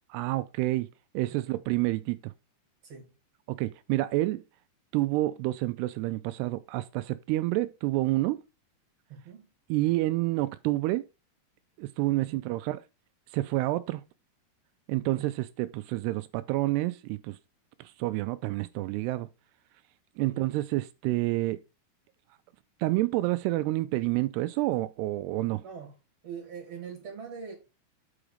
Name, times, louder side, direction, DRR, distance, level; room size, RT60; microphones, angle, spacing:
voice 1, 0.1-0.9 1.1-2.3 3.5-4.4 4.9-8.4 9.7-11.1 11.8-12.8 13.3-14.0 14.9-17.4 17.8-19.3 20.2-21.6 22.8-25.6, right 18 dB, 85° right, 2.6 m, -28 dB
voice 2, 9.1-9.5 12.1-12.4 14.9-15.3 20.2-20.5 25.6-25.9 26.2-27.5, right 6 dB, 45° right, 2.8 m, -43 dB
7.8 x 4.9 x 4.9 m
omnidirectional pair, 4.8 m